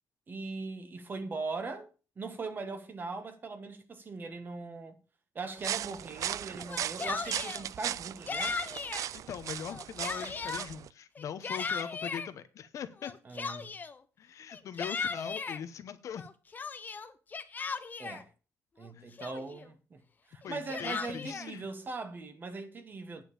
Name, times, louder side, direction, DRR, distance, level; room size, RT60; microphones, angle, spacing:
voice 1, 0.3-1.9 2.2-4.9 5.3-8.6 13.2-13.7 18.0-18.3 18.8-20.0 20.3-23.2, right 3 dB, 30° right, 1.5 m, -40 dB
sound 1, 5.6-10.9, right 11 dB, 65° right, 0.4 m, -37 dB
Yell, 6.6-7.6 8.3-9.1 9.6-10.7 11.2-12.3 13.0-14.0 14.5-15.6 16.1-18.2 18.8-18.9 19.2-19.7 20.4-21.5, left 5 dB, 30° left, 0.9 m, -37 dB
voice 2, 9.1-13.1 14.2-16.3 18.9-19.1 20.4-21.7, left 8 dB, 60° left, 1.0 m, -41 dB
9.4 x 5.4 x 7.0 m
cardioid pair, 135°, 6 cm